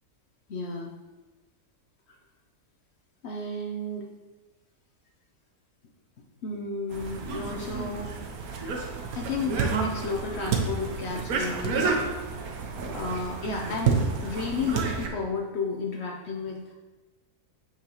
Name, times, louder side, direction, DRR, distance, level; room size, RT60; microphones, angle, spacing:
voice 1, 0.5-0.9 3.2-4.1 6.4-8.2 9.1-12.0 12.9-16.7, left 3 dB, 60° left, 0 dB, 0.7 m, -32 dB
sound 1, 6.9-15.1, right 5 dB, 70° right, 1.2 m, -30 dB
6.0 x 5.5 x 2.9 m, 1.2 s
omnidirectional pair, 1.7 m